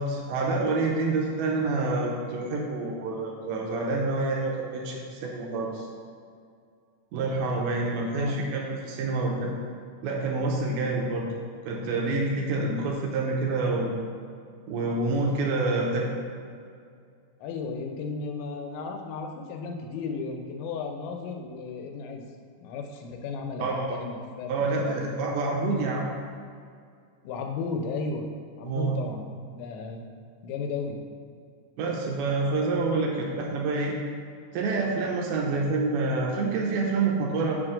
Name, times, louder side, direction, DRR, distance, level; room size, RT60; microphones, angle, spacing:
voice 1, 0.0-5.9 7.1-9.5 10.0-11.3 11.7-14.0 14.7-16.1 23.6-24.0 24.5-26.1 28.6-29.0 31.8-34.0 34.5-37.6, right 3 dB, 80° right, -1 dB, 2.3 m, -27 dB
voice 2, 8.1-8.4 17.4-22.2 22.6-25.0 27.2-28.2 28.6-30.1 30.4-31.0, left 4 dB, 85° left, 3 dB, 3.0 m, -34 dB
6.3 x 4.4 x 5.0 m, 2.2 s
omnidirectional pair, 5.1 m